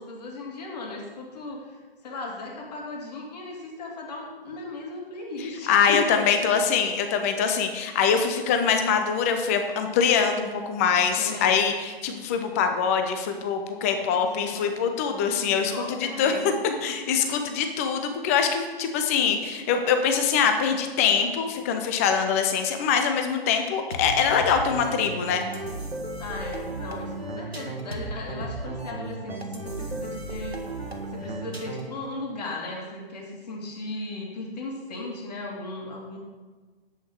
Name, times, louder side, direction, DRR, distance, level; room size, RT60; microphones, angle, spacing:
voice 1, 0.0-1.8 2.0-6.5 11.2-11.6 14.1-14.9 15.5-17.0 26.2-30.6 31.1-36.2, left 2 dB, 40° left, 0 dB, 2.6 m, -36 dB
voice 2, 5.7-16.3 16.8-25.4, left 6 dB, 15° left, 6 dB, 0.5 m, -24 dB
sound 1, 23.9-32.1, right 2 dB, 85° right, 1.4 m, -35 dB
10.0 x 8.1 x 4.6 m, 1.3 s
figure-of-eight pair, 130°, 30 cm